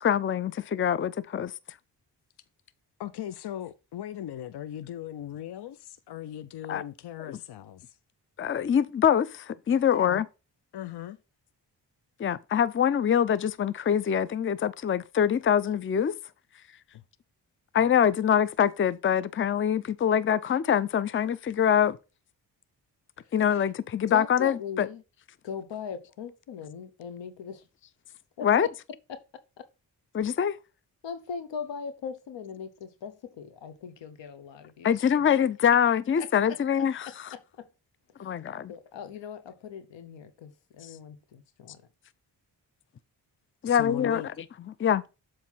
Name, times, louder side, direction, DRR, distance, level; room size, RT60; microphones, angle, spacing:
voice 1, 0.0-1.5 6.7-6.8 8.4-10.3 12.2-16.1 17.7-22.0 23.3-24.9 28.4-28.7 30.1-30.6 34.8-37.1 38.2-38.7 43.6-44.2 44.8-45.0, left 8 dB, 30° left, 0.5 m, -24 dB
voice 2, 3.0-7.8 9.9-10.2 10.7-11.2 43.6-44.3, left 11 dB, 65° left, 0.6 m, -38 dB
voice 3, 24.1-25.0 25.4-27.6 28.4-28.7 31.0-35.1 36.2-36.6 37.3-37.7 38.2-38.4 38.7-41.8, left 7 dB, 90° left, 1.0 m, -40 dB
7.3 x 3.2 x 5.5 m
cardioid pair, 50°, 43 cm